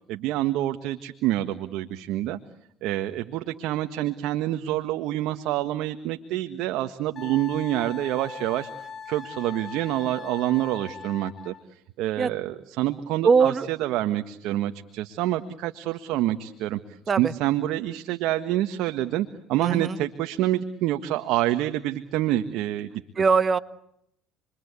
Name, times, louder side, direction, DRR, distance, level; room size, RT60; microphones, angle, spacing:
voice 1, 0.1-2.4 2.8-8.7 9.1-11.5 12.0-16.8 17.2-23.0, right 14 dB, 70° right, 8 dB, 1.5 m, -27 dB
Wind instrument woodwind instrument, 7.2-11.6, left 6 dB, 35° left, 2.0 m, -40 dB
voice 2, 13.2-13.7 17.1-17.3 19.6-20.0 23.1-23.6, right 5 dB, 35° right, 13 dB, 1.5 m, -21 dB
29.5 x 23.0 x 8.3 m, 0.75 s
supercardioid pair, 90°, 0 cm